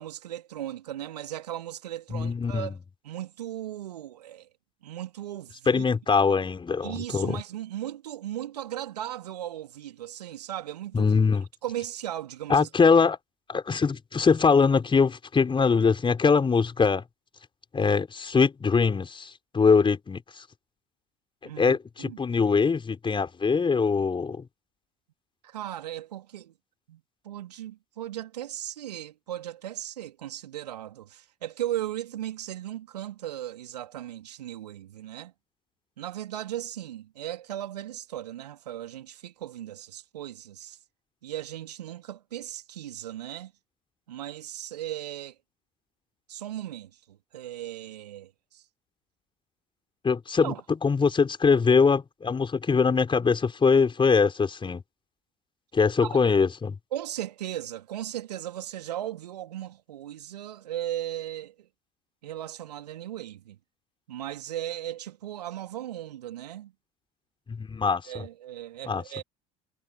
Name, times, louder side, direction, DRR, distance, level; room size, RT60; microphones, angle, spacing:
voice 1, 0.0-2.8 3.0-4.5 4.8-5.8 6.8-11.1 11.6-12.7 21.4-22.2 25.4-26.5 26.9-35.3 36.0-40.8 41.2-43.5 44.1-45.3 46.3-48.6 50.4-50.6 56.0-56.2 56.9-61.7 62.2-63.6 64.1-66.7 68.1-69.2, right 12 dB, 70° right, 3.6 m, -37 dB
voice 2, 2.1-2.8 5.7-7.4 10.9-11.5 12.5-13.2 13.5-17.0 17.7-20.4 21.6-24.5 50.0-50.5 50.8-54.8 55.7-56.8 67.5-68.2 68.9-69.0, left 5 dB, 25° left, 5.1 m, -23 dB
figure-of-eight pair, 65°, 21 cm